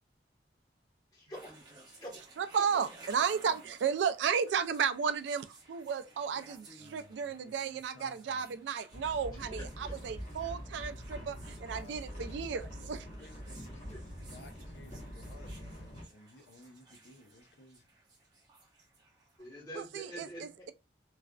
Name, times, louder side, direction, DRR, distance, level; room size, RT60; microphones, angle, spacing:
voice 1, 1.1-1.6 1.8-2.2 9.3-9.9 11.1-11.3 13.9-14.0 19.4-20.7, equal, 25° left, 1.1 m, -47 dB
sound 1, 1.3-19.4, right 2 dB, 25° right, 0.8 m, -57 dB
voice 2, 2.4-13.0 19.8-20.7, right 7 dB, 80° right, 0.3 m, -34 dB
voice 3, 6.8-8.7 11.7-13.8 14.3-17.9, left 2 dB, 75° left, 0.6 m, -57 dB
sound 2, 8.9-16.0, equal, 40° left, 1.1 m, -44 dB
3.1 x 2.4 x 2.2 m
head